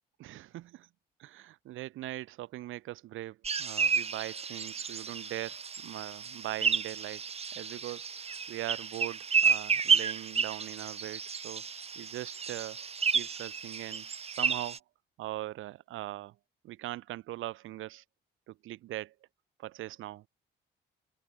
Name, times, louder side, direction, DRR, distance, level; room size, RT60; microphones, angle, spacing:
voice 1, 0.2-0.9 1.2-7.2 7.5-8.1 8.5-11.7 12.0-14.8 15.2-16.4 16.6-18.0 18.5-19.1 19.6-20.3, right 15 dB, 90° right, 5.2 m, -41 dB
sound 1, 3.4-14.8, right 6 dB, 30° right, 0.8 m, -31 dB
open air
cardioid pair, 90°, 20 cm